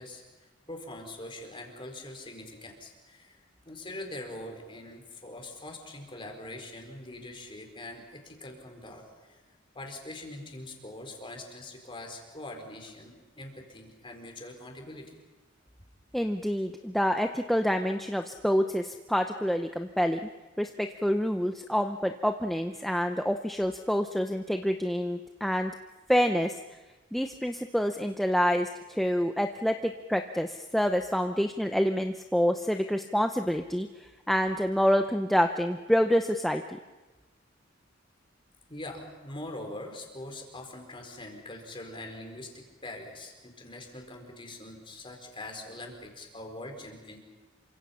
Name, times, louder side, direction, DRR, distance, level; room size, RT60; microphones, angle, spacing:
voice 1, 0.0-9.4 9.7-15.1 38.7-47.2, left 1 dB, 25° left, 3 dB, 4.3 m, -43 dB
voice 2, 16.1-20.3 20.6-25.7 26.1-26.6 27.1-33.9 34.3-36.8, equal, ahead, 5 dB, 0.7 m, -27 dB
28.0 x 25.0 x 5.7 m, 1.2 s
head